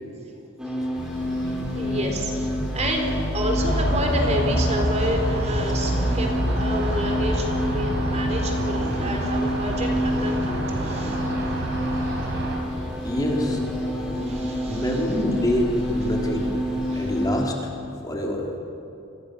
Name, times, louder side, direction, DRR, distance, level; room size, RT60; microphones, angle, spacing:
sound 1, 0.6-17.4, equal, 5° right, 4.1 m, -29 dB
sound 2, 0.9-17.3, equal, 60° left, 7.7 m, -32 dB
voice 1, 1.7-11.2 14.2-14.9 16.9-17.1, equal, 30° right, 3 dB, 3.5 m, -29 dB
sound 3, 3.6-12.6, right 1 dB, 55° right, 4.8 m, -28 dB
voice 2, 13.0-13.6 14.7-16.5 16.9-17.7 18.0-18.5, left 1 dB, 20° left, -1 dB, 3.3 m, -26 dB
29.5 x 22.5 x 6.5 m, 2.8 s
head